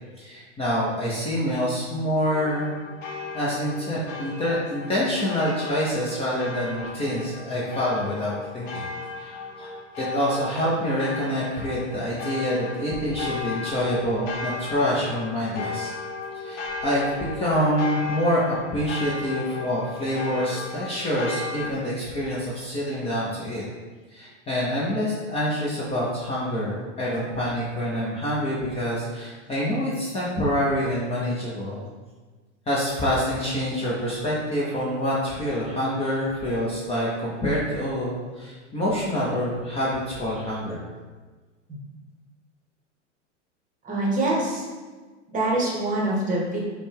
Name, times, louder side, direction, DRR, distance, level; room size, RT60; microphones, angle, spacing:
voice 1, 0.2-2.7 3.3-8.9 9.2-9.7 10.0-15.9 16.3-23.6 24.1-31.8 32.7-40.8, equal, 15° left, -7 dB, 0.6 m, -26 dB
sound 1, 2.2-21.7, left 4 dB, 85° left, 0.8 m, -35 dB
voice 2, 43.8-44.7 45.3-46.6, right 2 dB, 20° right, -4 dB, 0.9 m, -24 dB
5.0 x 2.2 x 3.3 m, 1.4 s
hypercardioid pair, 120°, 36 cm